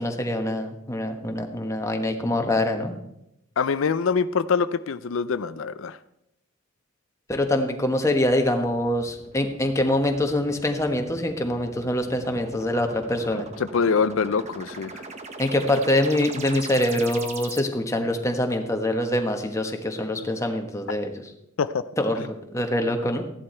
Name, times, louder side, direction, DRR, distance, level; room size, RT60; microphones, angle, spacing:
voice 1, 0.0-2.9 7.3-13.4 15.4-21.1 22.0-23.3, left 1 dB, 15° left, 4 dB, 1.2 m, -24 dB
voice 2, 3.6-6.0 13.3-15.0 21.6-21.8 22.2-22.3, left 5 dB, 80° left, 13 dB, 0.5 m, -25 dB
sound 1, 7.7-17.6, right 4 dB, 35° right, 1.0 m, -41 dB
14.5 x 11.0 x 4.4 m, 0.83 s
head